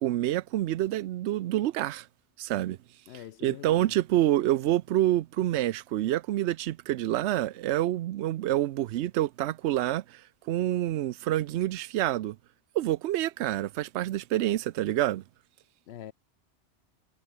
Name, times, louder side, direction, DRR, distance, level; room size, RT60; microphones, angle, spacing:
voice 1, 0.0-2.1 2.4-2.8 3.4-12.4 12.7-15.2, right 14 dB, 85° right, 0.9 m, -27 dB
voice 2, 3.1-3.9 15.9-16.1, left 11 dB, 75° left, 0.9 m, -44 dB
omnidirectional pair, 1.1 m